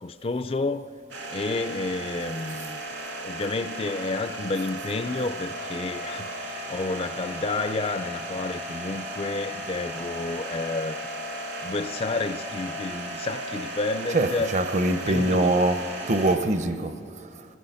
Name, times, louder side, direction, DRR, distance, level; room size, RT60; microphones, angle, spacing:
voice 1, 0.0-0.9 1.3-2.8 3.2-11.0 11.6-14.5 15.1-15.5, left 3 dB, 30° left, 0.4 m, -30 dB
sound 1, 1.1-16.4, right 1 dB, 70° right, 2.6 m, -35 dB
voice 2, 14.1-17.5, right 2 dB, 35° right, 0.7 m, -24 dB
26.0 x 18.0 x 5.7 m
head